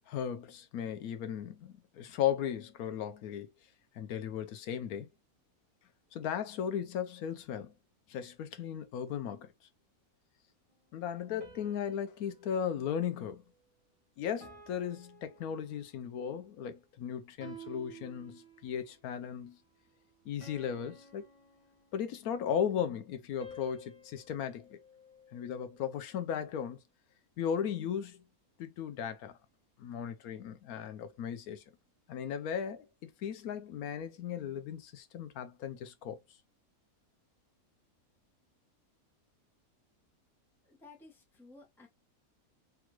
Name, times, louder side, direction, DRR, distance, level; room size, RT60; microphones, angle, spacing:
voice 1, 0.1-3.5 3.9-5.1 6.1-7.7 8.1-9.5 10.9-13.4 14.2-19.6 20.3-21.2 21.9-24.8 25.3-26.8 27.4-28.2 28.6-29.4 29.8-31.6 32.1-36.2, left 8 dB, 85° left, 1.1 m, -36 dB
sound 1, 11.4-13.9 14.4-16.2 17.4-18.9 20.4-22.3 23.4-25.8, right 2 dB, 30° right, 0.8 m, -54 dB
voice 2, 40.6-41.9, left 3 dB, ahead, 0.7 m, -55 dB
3.6 x 2.4 x 2.9 m
omnidirectional pair, 1.5 m